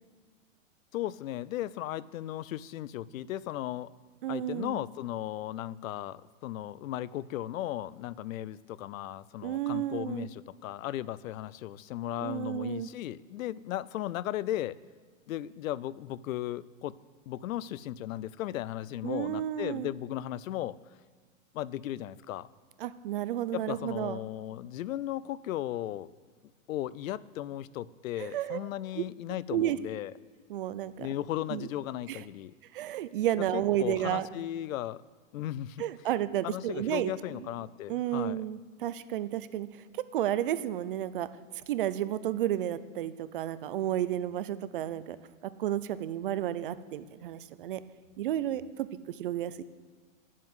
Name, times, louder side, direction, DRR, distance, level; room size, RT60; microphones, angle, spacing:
voice 1, 0.9-3.9 4.3-14.8 15.3-17.0 17.3-20.8 21.5-22.5 23.5-26.1 26.7-30.1 31.0-32.5 33.5-35.0 35.3-35.9 36.4-38.4, left 13 dB, 90° left, 20 dB, 0.6 m, -36 dB
voice 2, 4.2-4.8 9.4-10.3 12.2-12.9 19.0-19.9 22.8-24.2 28.2-28.7 29.0-29.1 29.5-29.8 30.5-31.1 31.5-31.7 32.1-32.2 32.7-34.3 35.8-37.1 37.4-37.5 37.9-39.7 40.1-41.3 41.7-45.2 45.6-47.8 48.2-49.6, right 12 dB, 45° right, 14 dB, 0.5 m, -32 dB
10.0 x 7.5 x 8.0 m, 1.5 s
supercardioid pair, 170°, 39 cm